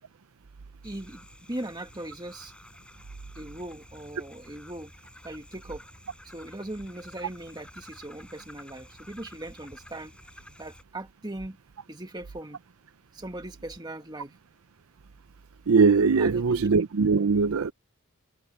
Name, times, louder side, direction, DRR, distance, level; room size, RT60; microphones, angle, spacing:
sound 1, 0.8-10.8, left 1 dB, 5° left, 6.2 m, -51 dB
voice 1, 0.8-2.5 3.4-4.9 5.2-5.8 6.2-10.1 10.6-11.6 11.9-12.6 13.1-14.3 16.2-16.7, right 1 dB, 20° right, 1.7 m, -39 dB
voice 2, 15.7-17.7, right 4 dB, 80° right, 0.6 m, -21 dB
head